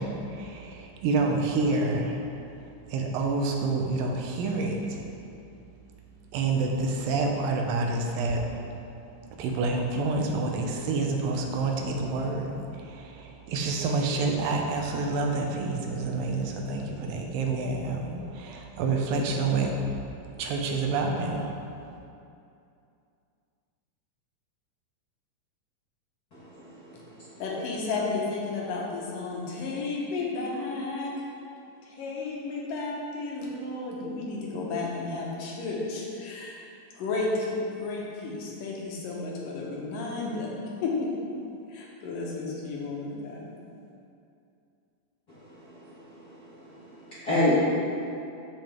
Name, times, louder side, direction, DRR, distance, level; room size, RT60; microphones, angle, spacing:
voice 1, 0.0-2.2 2.6-5.1 6.3-8.5 9.3-19.8 20.4-21.6, right 3 dB, 85° right, 2 dB, 2.5 m, -28 dB
voice 2, 26.3-26.7 27.1-27.3 45.4-45.5 45.9-47.5, left 1 dB, 50° left, -12 dB, 1.1 m, -30 dB
voice 3, 27.4-31.2 31.8-36.6 37.0-40.5 40.8-41.1 41.7-43.5, left 3 dB, 75° left, -3 dB, 2.7 m, -32 dB
7.6 x 7.2 x 3.6 m, 2.6 s
omnidirectional pair, 4.0 m